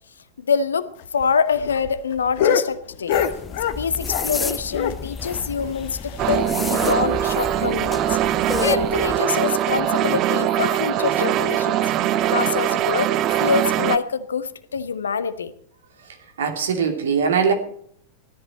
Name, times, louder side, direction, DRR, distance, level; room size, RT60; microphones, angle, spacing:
voice 1, 0.4-3.2 3.8-8.2 8.6-11.8 12.3-13.1 13.4-15.5, left 6 dB, 70° left, 14 dB, 1.0 m, -25 dB
sound 1, 1.0-4.4 4.7-6.7 7.0-7.1 7.4-7.5 7.9-8.0 8.6-8.8 9.7-9.8, left 9 dB, 50° left, 1.3 m, -26 dB
sound 2, 3.1-9.2, left 5 dB, 15° left, 0.6 m, -31 dB
sound 3, 6.2-14.0, right 12 dB, 35° right, 0.8 m, -22 dB
voice 2, 16.4-17.5, right 6 dB, 65° right, 5 dB, 2.9 m, -21 dB
17.5 x 13.5 x 4.3 m, 0.63 s
figure-of-eight pair, 90°, 0 cm